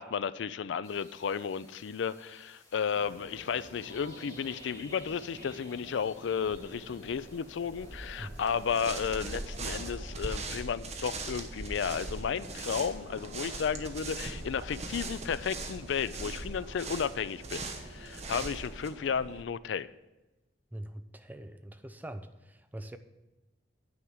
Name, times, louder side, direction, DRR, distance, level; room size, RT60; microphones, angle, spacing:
voice 1, 0.0-19.9, left 7 dB, 70° left, 16 dB, 0.4 m, -33 dB
sound 1, 0.8-9.0, left 2 dB, 20° left, 2.7 m, -56 dB
sound 2, 2.9-19.4, right 1 dB, 55° right, 1.6 m, -46 dB
sound 3, 8.3-18.9, right 3 dB, 35° right, 1.0 m, -41 dB
voice 2, 20.7-23.0, right 1 dB, 10° right, 9 dB, 0.5 m, -43 dB
9.6 x 4.9 x 7.3 m, 1.1 s
head